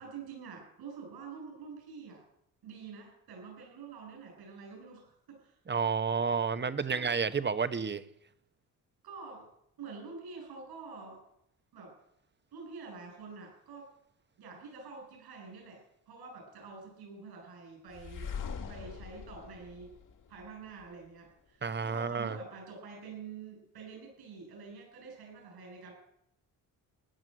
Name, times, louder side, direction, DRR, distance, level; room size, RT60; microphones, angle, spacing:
voice 1, 0.0-2.2 2.6-5.5 6.6-7.2 9.0-9.5 9.8-11.2 11.7-11.9 12.5-13.9 14.4-15.8 16.1-18.3 18.7-19.9 20.3-25.9, right 5 dB, 80° right, 0 dB, 7.9 m, -47 dB
voice 2, 5.7-8.0 21.6-22.4, right 5 dB, 30° right, 13 dB, 1.0 m, -30 dB
sound 1, 17.9-20.9, left 6 dB, 55° left, 2.2 m, -42 dB
15.5 x 10.5 x 7.9 m, 0.77 s
cardioid pair, 90°, 38 cm